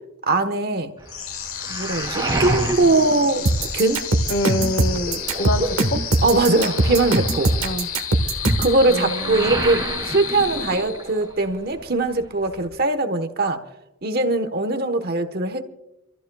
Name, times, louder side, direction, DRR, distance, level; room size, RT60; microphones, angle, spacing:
voice 1, 0.3-0.9 1.7-3.4 3.7-4.0 6.2-7.5 8.6-13.6 14.0-15.6, right 2 dB, 45° right, 8 dB, 1.2 m, -21 dB
Waves surf, 1.0-4.2 4.5-11.5 11.7-12.7, right 2 dB, 20° right, 2.8 m, -31 dB
sound 1, 1.1-11.3, left 9 dB, 80° left, 1.3 m, -32 dB
sound 2, 3.5-8.8, right 2 dB, 80° right, 1.4 m, -21 dB
voice 2, 4.3-6.0 7.6-7.9 8.9-9.5, left 1 dB, 60° left, 10 dB, 1.1 m, -26 dB
28.0 x 14.5 x 2.4 m, 0.89 s
head